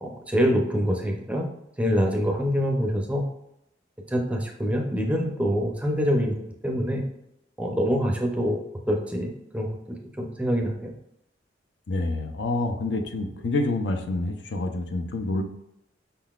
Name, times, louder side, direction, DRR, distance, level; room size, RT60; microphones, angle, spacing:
voice 1, 0.0-1.5 1.8-3.2 4.1-7.0 7.6-8.6 8.9-10.9, equal, 5° right, 1 dB, 0.5 m, -25 dB
voice 2, 11.9-15.4, left 2 dB, 65° left, 5 dB, 0.5 m, -27 dB
5.4 x 3.8 x 2.3 m, 0.82 s
head